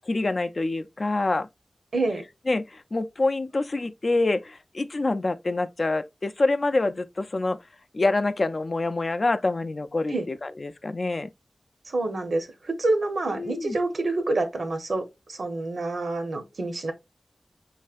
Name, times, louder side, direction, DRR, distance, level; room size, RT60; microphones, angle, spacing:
voice 1, 0.1-1.5 2.5-7.6 7.9-11.3 13.4-13.8, left 2 dB, 50° left, 0.4 m, -26 dB
voice 2, 1.9-2.2 10.1-10.3 11.9-16.9, right 2 dB, 85° right, 0.9 m, -27 dB
5.4 x 3.2 x 2.4 m
wide cardioid pair, 90°, 0 cm